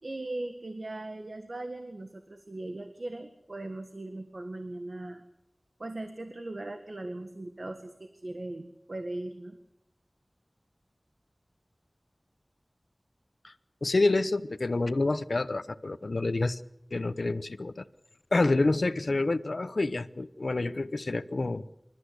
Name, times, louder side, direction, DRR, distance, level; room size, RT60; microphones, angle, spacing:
voice 1, 0.0-5.2 5.8-9.6, right 2 dB, 65° right, 7 dB, 1.7 m, -39 dB
voice 2, 13.8-16.6 16.9-17.8 18.3-21.6, left 2 dB, 80° left, 14 dB, 0.9 m, -28 dB
27.5 x 14.0 x 8.2 m, 0.88 s
wide cardioid pair, 55°, 0 cm